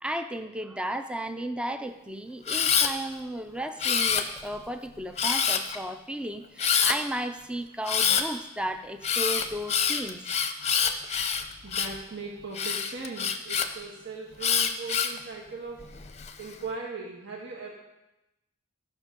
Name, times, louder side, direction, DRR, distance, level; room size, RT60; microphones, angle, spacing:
voice 1, 0.0-10.2, right 1 dB, 5° right, 8 dB, 0.5 m, -34 dB
Camera, 2.5-2.9 3.8-4.6 5.2-5.8 6.6-7.0 7.8-8.2 9.0-12.0 12.5-13.7 14.4-15.2 15.8-16.3, left 7 dB, 30° left, 0.7 m, -26 dB
voice 2, 11.6-15.9 16.4-17.7, right 4 dB, 55° right, -3 dB, 1.6 m, -39 dB
13.5 x 6.2 x 5.2 m, 0.92 s
head